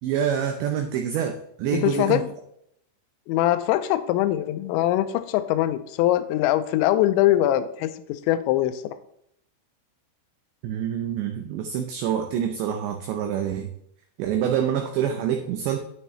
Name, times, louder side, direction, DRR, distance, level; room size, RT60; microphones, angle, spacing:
voice 1, 0.0-2.2 10.6-13.7 14.2-15.8, right 9 dB, 80° right, 5 dB, 2.7 m, -26 dB
voice 2, 1.7-2.3 3.3-9.0, left 14 dB, 85° left, 10 dB, 2.7 m, -22 dB
9.2 x 9.1 x 3.2 m, 0.73 s
omnidirectional pair, 5.8 m